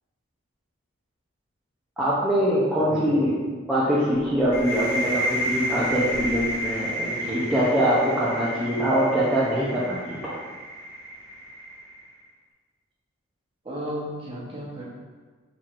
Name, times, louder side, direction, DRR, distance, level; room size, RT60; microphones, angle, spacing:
voice 1, 2.0-3.4 3.7-10.4, equal, 5° right, -10 dB, 0.5 m, -23 dB
voice 2, 2.8-3.3 7.1-7.5 13.6-14.8, equal, 25° right, -6 dB, 0.9 m, -34 dB
sound 1, 4.0-4.8 5.9-6.7, equal, 90° right, 1.3 m, -34 dB
sound 2, 4.5-12.1, equal, 60° left, 0.7 m, -31 dB
4.4 x 4.4 x 2.5 m, 1.5 s
head